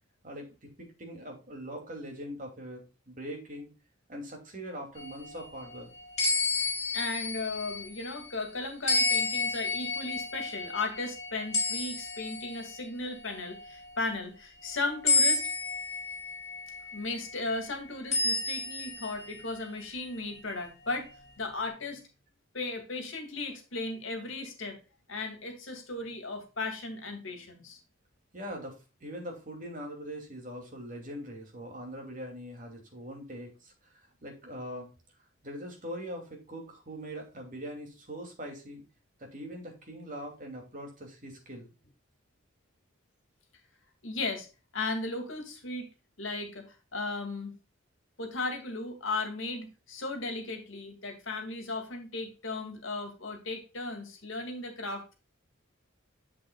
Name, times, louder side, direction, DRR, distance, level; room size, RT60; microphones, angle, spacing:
voice 1, 0.2-3.7 4.1-5.9 28.3-34.9 35.4-38.8 39.2-41.7, equal, 40° right, 1 dB, 2.7 m, -42 dB
sound 1, 5.0-8.4 8.9-12.8 13.3-13.6 15.1-17.1 18.1-20.1, left 3 dB, 30° left, 4.5 m, -31 dB
voice 2, 6.9-15.5 16.9-22.0 22.5-24.8 25.1-27.8 44.0-44.5 44.7-45.9 46.2-47.5 48.2-55.1, left 3 dB, 65° left, 5 dB, 2.2 m, -36 dB
7.8 x 7.7 x 2.4 m, 0.31 s
head